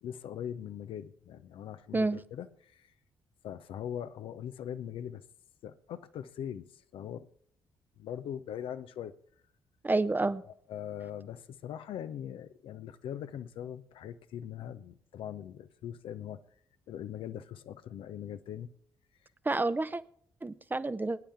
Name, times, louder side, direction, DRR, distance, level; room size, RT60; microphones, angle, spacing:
voice 1, 0.0-2.9 3.4-5.2 5.6-6.7 6.9-7.3 8.0-9.1 10.3-16.4 16.9-18.7, left 9 dB, 60° left, 0.7 m, -41 dB
voice 2, 9.8-10.4 19.4-20.0 20.4-21.2, right 2 dB, 20° right, 0.8 m, -29 dB
22.5 x 10.0 x 3.5 m
figure-of-eight pair, 40°, 10 cm